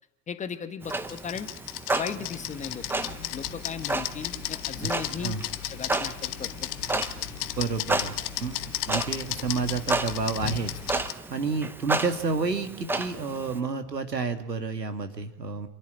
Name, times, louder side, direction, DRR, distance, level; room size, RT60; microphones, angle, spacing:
voice 1, 0.3-1.5 1.9-5.4 5.7-7.0, left 6 dB, 15° left, 10 dB, 1.2 m, -37 dB
Clock, 0.8-13.6, right 2 dB, 5° right, 0.7 m, -33 dB
sound 1, 0.9-11.1, left 17 dB, 35° left, 0.8 m, -35 dB
voice 2, 7.6-8.6 8.9-15.7, right 4 dB, 85° right, 8 dB, 2.0 m, -30 dB
26.5 x 11.0 x 9.6 m, 0.91 s
figure-of-eight pair, 100°, 48 cm